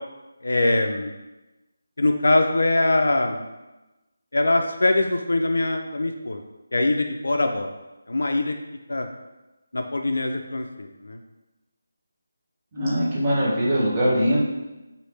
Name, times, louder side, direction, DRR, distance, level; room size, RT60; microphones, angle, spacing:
voice 1, 0.4-1.1 2.0-3.4 4.3-6.4 6.7-7.7 8.1-8.5 8.9-9.1 9.7-11.2, left 2 dB, 80° left, 5 dB, 0.3 m, -22 dB
voice 2, 12.7-14.4, equal, 20° right, -7 dB, 0.8 m, -21 dB
3.1 x 2.5 x 3.2 m, 1.1 s
figure-of-eight pair, 165°, 0 cm